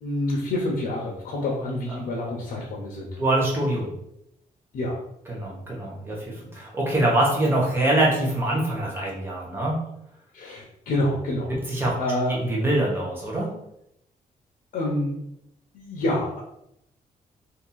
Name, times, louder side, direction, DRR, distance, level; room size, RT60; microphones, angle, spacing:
voice 1, 0.0-3.2 4.7-5.0 10.3-12.4 14.7-15.2 15.7-16.4, left 1 dB, 80° left, -3 dB, 0.7 m, -27 dB
voice 2, 3.2-3.9 5.3-9.8 11.7-11.9 12.3-13.5, right 1 dB, 15° right, -3 dB, 0.9 m, -24 dB
2.8 x 2.6 x 3.8 m, 0.77 s
wide cardioid pair, 175°, 15 cm